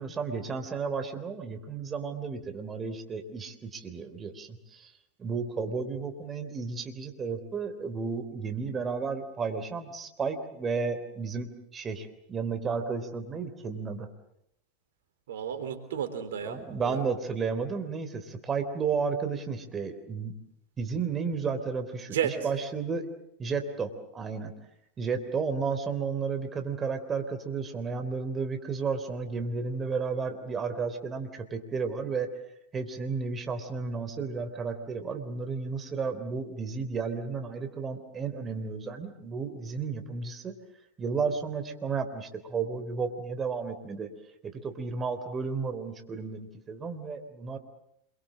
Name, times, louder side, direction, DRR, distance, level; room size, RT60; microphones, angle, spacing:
voice 1, 0.0-4.9 5.2-14.1 16.4-20.3 20.8-23.1 23.4-24.5 25.0-32.3 32.7-40.5 41.0-44.1 44.4-47.6, right 5 dB, 25° right, 8 dB, 3.6 m, -33 dB
voice 2, 15.3-17.0 22.0-22.4, right 9 dB, 75° right, 10 dB, 3.5 m, -32 dB
27.5 x 24.0 x 7.6 m, 0.77 s
hypercardioid pair, 95°, 0 cm